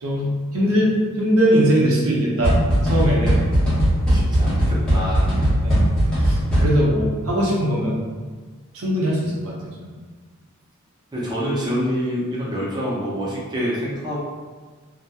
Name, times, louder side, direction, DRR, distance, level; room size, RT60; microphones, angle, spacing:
voice 1, 0.0-2.6 2.8-3.4 5.6-5.8 6.2-8.0 8.7-9.9, equal, 80° right, -3 dB, 0.6 m, -21 dB
sound 1, 2.4-7.0, equal, 5° left, 0.9 m, -19 dB
voice 2, 4.1-5.3 11.1-14.2, equal, 20° right, -7 dB, 0.5 m, -26 dB
2.8 x 2.1 x 2.3 m, 1.4 s
head